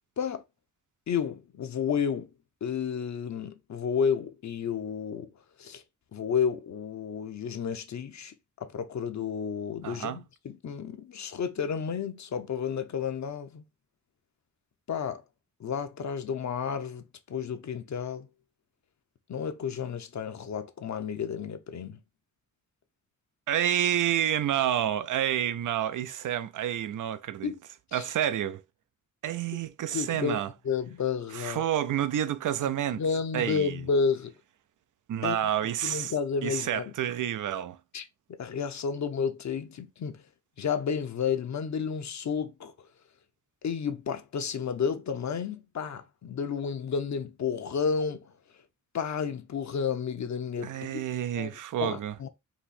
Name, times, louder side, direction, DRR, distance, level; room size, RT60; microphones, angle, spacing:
voice 1, 1.1-2.3 2.6-5.3 5.6-5.8 6.1-8.3 8.6-13.6 14.9-15.2 15.6-18.3 19.3-22.0 27.4-27.6 27.9-28.1 29.9-30.4 30.6-31.6 33.0-34.3 35.2-35.4 35.8-36.9 37.9-38.0 38.4-40.2 40.6-42.7 43.6-48.3 48.9-51.0 51.4-52.3, left 6 dB, 65° left, 0.8 m, -31 dB
voice 2, 9.8-10.2 23.5-27.5 27.9-28.6 29.2-30.5 31.3-33.0 33.3-33.8 35.1-36.1 36.4-37.8 50.6-52.3, right 10 dB, 90° right, 0.5 m, -29 dB
4.2 x 2.8 x 4.1 m
wide cardioid pair, 115°, 30 cm